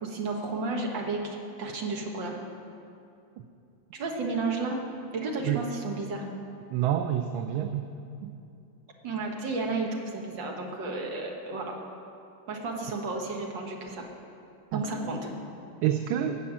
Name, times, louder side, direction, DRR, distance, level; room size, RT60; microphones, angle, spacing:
voice 1, 0.0-2.4 3.9-4.8 5.1-6.3 9.0-11.8 12.5-14.1 14.7-15.3, right 3 dB, 65° right, 1 dB, 2.1 m, -32 dB
voice 2, 6.7-7.9 8.2-8.3 14.7-14.8 15.8-16.4, right 11 dB, 80° right, 7 dB, 1.4 m, -27 dB
15.5 x 5.8 x 8.7 m, 2.6 s
omnidirectional pair, 2.2 m